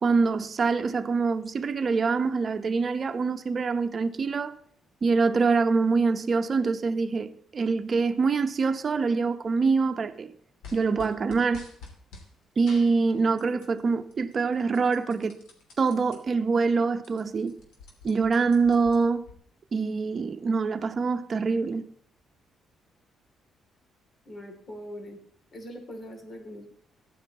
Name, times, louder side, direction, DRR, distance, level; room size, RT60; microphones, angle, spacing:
voice 1, 0.0-4.6 5.0-10.3 10.7-11.7 12.6-15.4 15.8-17.6 18.0-19.2 19.7-21.8, right 4 dB, 40° right, 0.9 m, -25 dB
sound 1, 10.6-12.3 12.7-13.8 14.1-16.2 16.6-16.7 16.9-19.3, left 4 dB, 85° left, 3.1 m, -48 dB
voice 2, 24.3-25.2 25.5-26.7, equal, 45° left, 2.9 m, -41 dB
15.0 x 11.0 x 3.0 m
cardioid pair, 90°, 0 cm